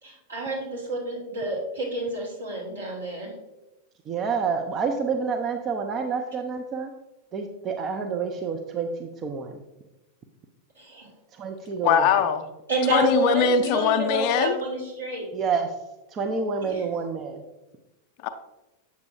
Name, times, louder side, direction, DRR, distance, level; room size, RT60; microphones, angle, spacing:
voice 1, 0.0-3.3 10.8-11.1 12.7-15.3 16.6-16.8, right 2 dB, 75° right, -3 dB, 2.2 m, -29 dB
voice 2, 4.1-6.9 7.3-9.6 11.3-12.1 15.3-15.7 16.1-17.4, right 5 dB, 30° right, 4 dB, 0.6 m, -28 dB
voice 3, 11.8-12.5 12.9-14.5 18.2-18.3, left 7 dB, 45° left, 9 dB, 0.5 m, -21 dB
8.2 x 6.9 x 2.7 m, 1.0 s
figure-of-eight pair, 90°, 0 cm